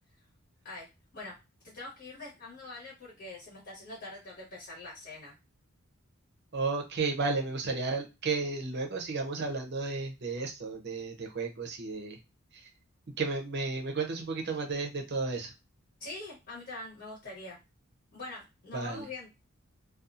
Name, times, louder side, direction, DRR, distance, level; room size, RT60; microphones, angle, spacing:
voice 1, 1.6-5.3 16.0-17.6 18.1-19.3, left 2 dB, 50° left, -5 dB, 1.1 m, -44 dB
voice 2, 6.5-12.2 12.6-12.7 13.2-15.5 18.7-19.0, right 4 dB, 50° right, 3 dB, 0.6 m, -33 dB
2.6 x 2.3 x 2.4 m, 0.25 s
head